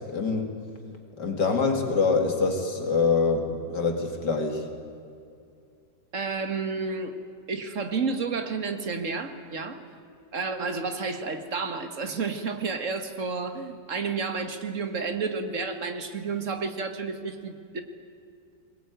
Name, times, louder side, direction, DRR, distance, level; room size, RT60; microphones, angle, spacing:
voice 1, 0.1-0.5 1.2-4.6, left 4 dB, 70° left, 4 dB, 2.9 m, -25 dB
voice 2, 6.1-7.2 7.5-9.8 10.3-17.8, right 4 dB, 45° right, 7 dB, 2.0 m, -31 dB
21.5 x 20.5 x 9.3 m, 2.4 s
omnidirectional pair, 1.9 m